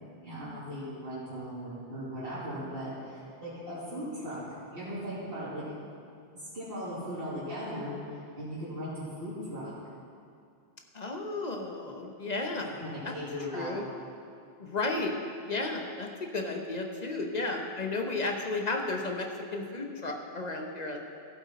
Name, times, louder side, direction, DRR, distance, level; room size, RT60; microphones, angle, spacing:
voice 1, 0.2-4.4 4.7-5.6 6.5-9.7 12.8-13.8, equal, 60° right, -12 dB, 2.7 m, -38 dB
voice 2, 10.9-12.8 13.0-13.1 13.5-13.8 14.6-15.1 15.5-21.0, left 2 dB, 40° left, 2 dB, 1.1 m, -33 dB
14.5 x 8.2 x 4.2 m, 2.4 s
omnidirectional pair, 1.1 m